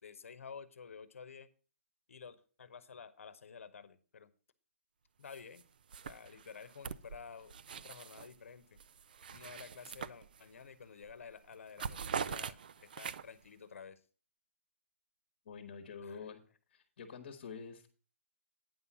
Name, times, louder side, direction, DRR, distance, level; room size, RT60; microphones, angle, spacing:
voice 1, 0.0-1.5 2.1-4.3 5.2-5.6 6.0-8.8 9.3-14.0 16.0-16.3, left 6 dB, 70° left, 15 dB, 0.9 m, -51 dB
sound 1, 5.3-5.6 5.9-8.4 8.8-10.7 11.0-11.2 11.5-13.5, right 7 dB, 40° right, 0.4 m, -43 dB
voice 2, 15.4-16.4 16.7-17.9, left 5 dB, 40° left, 5 dB, 1.2 m, -47 dB
9.4 x 5.6 x 5.9 m, 0.38 s
hypercardioid pair, 175°, 7 cm